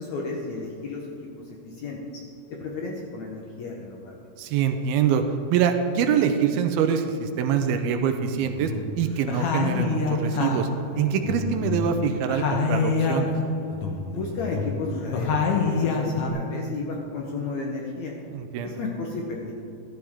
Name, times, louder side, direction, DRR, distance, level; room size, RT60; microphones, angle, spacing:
voice 1, 0.0-2.0 2.5-4.2 14.1-18.2 18.6-19.5, left 3 dB, 70° left, -1 dB, 1.8 m, -33 dB
voice 2, 4.4-5.2 5.5-10.7 11.0-13.3 18.3-18.8, right 7 dB, 80° right, 7 dB, 2.5 m, -24 dB
sound 1, 8.4-9.0 9.3-12.0 12.3-13.4 13.7-16.3, left 4 dB, 90° left, 1.3 m, -26 dB
14.0 x 12.5 x 3.7 m, 2.8 s
omnidirectional pair, 4.5 m